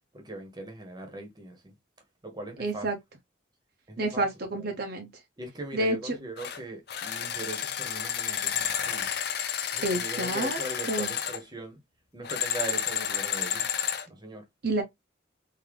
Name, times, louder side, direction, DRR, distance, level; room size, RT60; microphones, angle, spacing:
voice 1, 0.1-1.7 2.2-2.9 3.9-4.2 4.5-4.7 5.4-9.1 9.7-11.8 12.1-13.7 14.1-14.4, right 2 dB, 20° right, 1.0 m, -40 dB
voice 2, 2.6-3.0 4.0-5.1 5.7-6.1 9.8-10.6 10.9-11.1 14.6-14.8, right 2 dB, 50° right, 0.7 m, -29 dB
sound 1, 6.4-6.6 6.9-11.4 12.2-14.1, left 9 dB, 55° left, 0.6 m, -31 dB
3.8 x 2.7 x 3.2 m
head